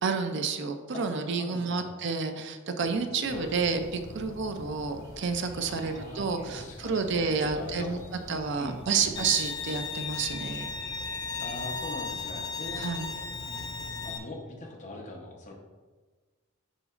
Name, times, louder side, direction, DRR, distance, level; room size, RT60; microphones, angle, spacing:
voice 1, 0.0-8.0 8.3-10.7 12.8-13.1, right 5 dB, 60° right, 7 dB, 0.5 m, -30 dB
voice 2, 0.9-1.9 3.1-3.5 5.6-8.0 8.6-9.3 11.4-13.2 14.0-15.5, left 2 dB, 35° left, 0 dB, 0.9 m, -42 dB
sound 1, 3.2-14.1, left 1 dB, 35° right, 1.8 m, -45 dB
Bowed string instrument, 9.2-14.2, left 5 dB, 20° left, 0.4 m, -36 dB
9.9 x 3.9 x 2.5 m, 1.4 s
head